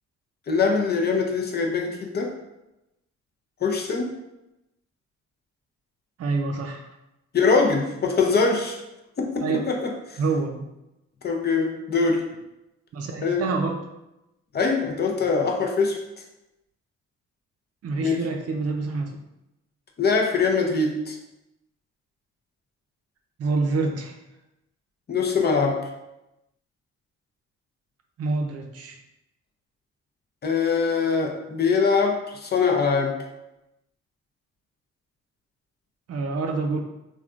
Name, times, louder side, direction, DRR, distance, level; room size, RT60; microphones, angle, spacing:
voice 1, 0.5-2.4 3.6-4.2 7.3-8.8 9.2-10.2 11.2-12.3 13.2-13.4 14.5-16.0 18.0-18.2 20.0-21.2 25.1-25.9 30.4-33.2, left 4 dB, 35° left, 2 dB, 0.5 m, -23 dB
voice 2, 6.2-6.9 9.4-9.6 10.2-10.7 12.9-13.8 17.8-19.2 23.4-24.2 28.2-29.0 36.1-36.8, right 3 dB, 55° right, 3 dB, 0.5 m, -27 dB
3.2 x 2.3 x 2.4 m, 0.92 s
cardioid pair, 90°, 30 cm